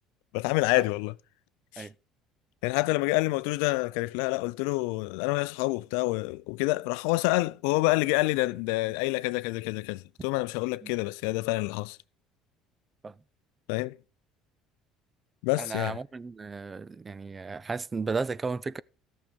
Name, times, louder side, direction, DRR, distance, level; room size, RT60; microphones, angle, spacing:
voice 1, 0.3-1.1 1.7-1.9 2.6-12.0 13.7-14.0 15.4-16.0, left 22 dB, 85° left, 0.4 m, -27 dB
voice 2, 15.6-18.8, right 4 dB, 25° right, 0.4 m, -34 dB
14.0 x 6.4 x 5.2 m
supercardioid pair, 105°, 0 cm